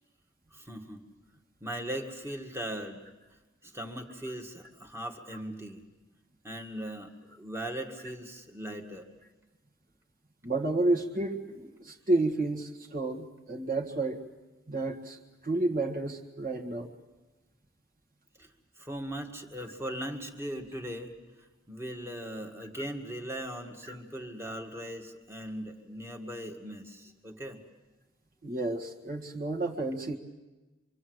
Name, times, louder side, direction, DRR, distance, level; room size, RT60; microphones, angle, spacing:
voice 1, 0.5-1.0 1.6-3.1 3.6-5.8 6.4-9.1 18.4-18.5 18.8-21.1 21.7-27.6, equal, 10° right, 3 dB, 1.9 m, -39 dB
voice 2, 10.4-14.2 14.7-16.9 23.9-24.0 28.4-30.2, right 2 dB, 40° right, 1 dB, 1.8 m, -31 dB
25.5 x 25.5 x 7.9 m, 1.1 s
head